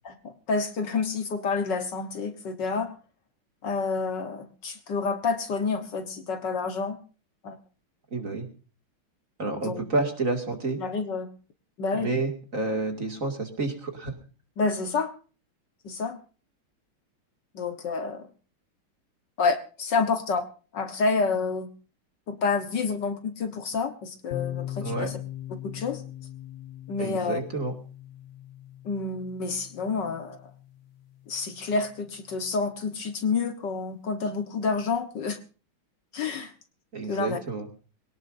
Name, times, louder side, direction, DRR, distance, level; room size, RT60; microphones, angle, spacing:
voice 1, 0.1-2.9 3.6-7.0 7.4-7.6 9.6-9.8 10.8-11.3 11.8-12.1 14.6-15.1 15.8-16.2 17.5-18.3 19.4-20.4 20.7-21.7 22.3-25.2 25.6-26.0 26.9-27.4 28.9-30.5 31.3-35.4 36.1-36.5 37.1-37.4, left 4 dB, 60° left, 8 dB, 1.8 m, -29 dB
voice 2, 8.1-8.5 9.4-10.8 11.9-14.1 24.8-25.1 27.0-27.7 36.9-37.7, right 3 dB, 40° right, 4 dB, 2.7 m, -29 dB
sound 1, 24.3-32.0, left 12 dB, 40° left, 1.0 m, -40 dB
22.0 x 18.0 x 2.7 m, 0.36 s
omnidirectional pair, 2.3 m